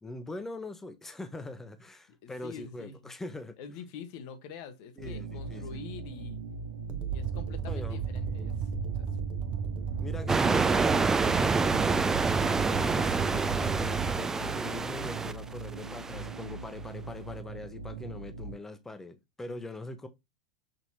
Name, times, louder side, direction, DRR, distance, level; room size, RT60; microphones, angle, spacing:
voice 1, 0.0-3.6 5.0-5.8 7.6-8.0 10.0-20.1, left 2 dB, 10° left, 0.8 m, -42 dB
voice 2, 2.1-3.1 3.6-6.4 7.1-8.7 8.9-9.1 12.8-13.2, left 7 dB, 55° left, 1.0 m, -45 dB
sound 1, 5.0-18.5, right 3 dB, 75° right, 1.1 m, -41 dB
sound 2, 6.9-14.2, right 7 dB, 30° right, 0.9 m, -34 dB
sound 3, 10.3-16.5, right 4 dB, 15° right, 0.4 m, -28 dB
6.4 x 2.9 x 2.8 m
hypercardioid pair, 105°, 3 cm